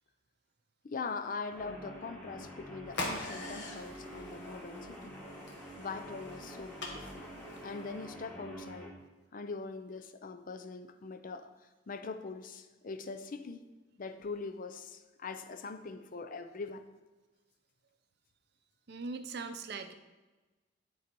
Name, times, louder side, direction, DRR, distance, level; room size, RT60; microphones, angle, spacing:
voice 1, 0.8-5.1 5.8-7.3 7.6-8.9 9.3-11.5 11.9-13.6 14.0-16.8, left 4 dB, 45° left, 9 dB, 0.5 m, -42 dB
Guitar, 1.5-8.9, equal, 5° left, 1.4 m, -47 dB
sound 1, 2.9-8.1, left 2 dB, 60° left, 1.3 m, -43 dB
voice 2, 18.9-19.9, right 4 dB, 60° right, 8 dB, 0.6 m, -40 dB
10.5 x 4.0 x 4.5 m, 1.2 s
head